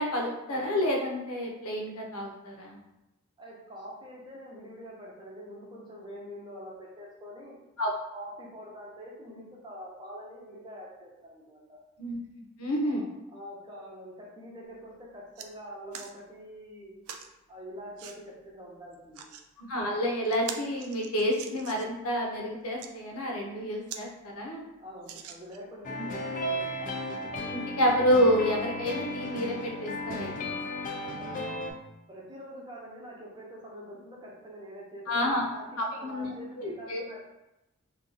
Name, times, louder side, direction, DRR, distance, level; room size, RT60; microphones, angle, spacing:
voice 1, 0.0-2.8 7.8-7.9 12.0-12.2 12.6-13.1 19.6-24.6 26.0-26.1 27.5-30.5 35.1-35.4 35.8-36.3 36.6-37.0, equal, 85° left, 0 dB, 0.7 m, -29 dB
voice 2, 3.4-7.6 8.1-11.8 12.9-16.9 17.5-19.3 24.8-26.7 31.2-31.4 32.1-37.2, equal, 20° right, -3 dB, 0.7 m, -45 dB
sound 1, 14.7-14.8 15.1-15.5 15.9-16.1 17.1-17.3 18.0-18.2 18.9-19.5 19.9-20.0 20.3-22.0 22.6-22.9 23.5-23.6 23.9-24.1 24.4-24.5 25.0-25.7 26.4-26.5, right 8 dB, 75° right, 0.3 m, -43 dB
sound 2, 25.8-31.7, left 1 dB, 35° left, 0.4 m, -34 dB
2.6 x 2.3 x 3.9 m, 0.94 s
head